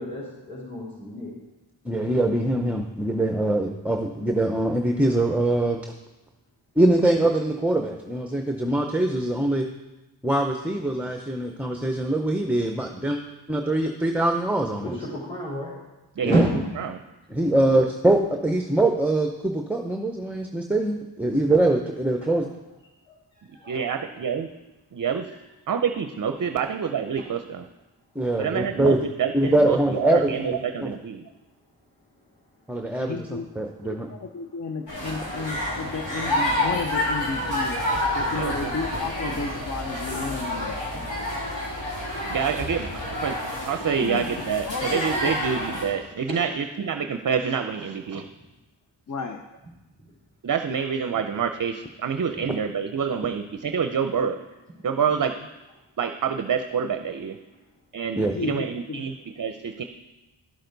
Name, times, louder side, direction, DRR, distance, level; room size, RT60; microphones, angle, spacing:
voice 1, 0.0-1.3 14.8-15.7 16.3-16.5 22.4-22.5 23.1-24.0 26.4-26.5 27.2-27.3 32.8-33.0 33.9-34.0 39.1-39.2 40.0-41.4 43.7-43.8 46.3-46.4, right 1 dB, 20° left, -11 dB, 3.7 m, -31 dB
voice 2, 1.8-5.8 6.8-9.7 10.2-13.2 13.5-14.9 16.2-16.4 17.3-22.5 28.2-29.0 29.3-30.9 32.7-34.1 58.2-58.3, right 1 dB, 5° right, 4 dB, 0.6 m, -23 dB
voice 3, 23.7-24.5 24.9-25.3 25.7-27.7 28.4-31.3 38.3-38.7 41.8-42.0 42.3-43.4 43.6-48.3 50.4-54.4 54.8-55.4 56.0-57.4 57.9-59.8, right 7 dB, 45° right, 7 dB, 0.6 m, -27 dB
voice 4, 33.0-33.5 33.8-37.8 38.2-40.8 44.0-45.3 49.1-49.4 58.3-59.1, left 4 dB, 40° left, 5 dB, 0.7 m, -33 dB
sound 1, 34.9-45.8, left 1 dB, 75° left, 3.2 m, -29 dB
11.5 x 6.6 x 3.9 m, 1.1 s
cardioid pair, 55°, 45 cm